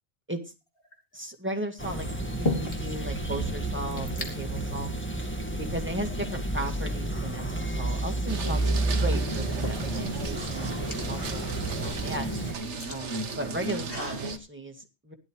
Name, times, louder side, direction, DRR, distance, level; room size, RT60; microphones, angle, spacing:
sound 1, 0.8-1.2 2.0-3.0 3.3-3.4 3.6-4.3 5.1-5.3 5.9-6.8 8.5-8.6 9.3-14.3, left 2 dB, 55° left, 2.8 m, -37 dB
voice 1, 1.1-2.1 2.4-4.9 5.6-12.3 12.9-15.1, right 1 dB, 10° right, 4 dB, 2.0 m, -36 dB
sound 2, 1.8-12.5, right 2 dB, 10° left, 2.0 m, -31 dB
sound 3, 8.3-14.4, right 3 dB, 85° right, 1.5 m, -35 dB
16.5 x 11.5 x 3.1 m, 0.28 s
omnidirectional pair, 1.2 m